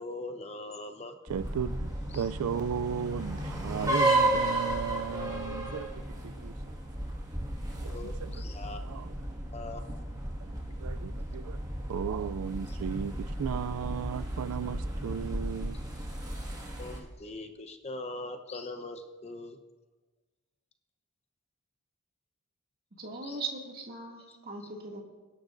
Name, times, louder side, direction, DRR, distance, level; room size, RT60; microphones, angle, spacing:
voice 1, 0.0-1.1 2.1-2.2 7.9-8.8 9.5-9.8 12.7-12.8 16.8-19.6 23.2-23.4, left 2 dB, 30° left, 6 dB, 0.8 m, -41 dB
sound 1, 1.3-17.0, right 1 dB, 20° right, 1.8 m, -33 dB
voice 2, 1.3-5.9 6.2-6.5 7.7-8.4 8.8-9.1 10.8-11.6 11.9-15.8, right 7 dB, 75° right, 15 dB, 0.3 m, -35 dB
voice 3, 23.0-25.0, right 3 dB, 45° right, -1 dB, 2.3 m, -39 dB
24.0 x 11.5 x 2.6 m, 1.2 s
head